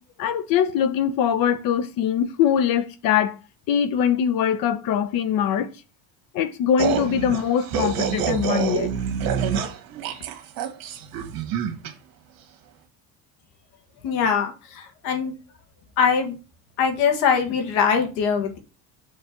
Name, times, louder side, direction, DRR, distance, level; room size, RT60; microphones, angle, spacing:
voice 1, 0.2-3.4 3.7-5.7 6.3-8.9, left 8 dB, 65° left, 0.9 m, -22 dB
sound 1, 6.8-11.9, right 7 dB, 65° right, 1.5 m, -26 dB
voice 2, 14.0-15.3 16.0-16.4 16.8-18.6, left 6 dB, 85° left, 1.9 m, -22 dB
6.6 x 3.3 x 6.0 m
cardioid pair, 125°, 37 cm